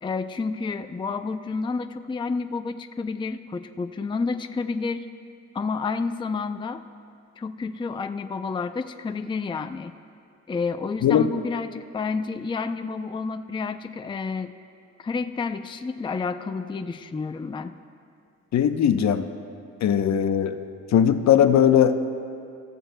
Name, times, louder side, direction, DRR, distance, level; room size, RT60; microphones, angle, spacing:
voice 1, 0.0-5.1 5.5-6.8 7.4-9.9 10.5-14.5 15.0-17.8, left 4 dB, 15° left, 8 dB, 0.5 m, -30 dB
voice 2, 18.5-19.2 19.8-20.6 20.9-21.9, left 9 dB, 65° left, 8 dB, 0.8 m, -19 dB
28.5 x 15.0 x 2.2 m, 2.3 s
cardioid pair, 90°, 30 cm